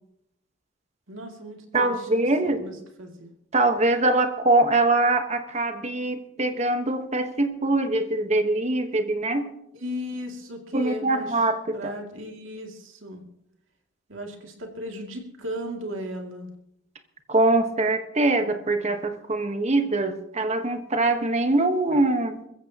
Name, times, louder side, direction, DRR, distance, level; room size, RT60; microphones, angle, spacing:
voice 1, 1.1-3.3 9.7-11.4 11.7-13.2 14.1-16.5, equal, 85° right, 2 dB, 2.5 m, -36 dB
voice 2, 1.7-2.6 3.5-9.5 10.7-11.9 17.3-22.4, right 2 dB, 35° right, 7 dB, 1.2 m, -23 dB
23.0 x 14.5 x 2.9 m, 0.80 s
head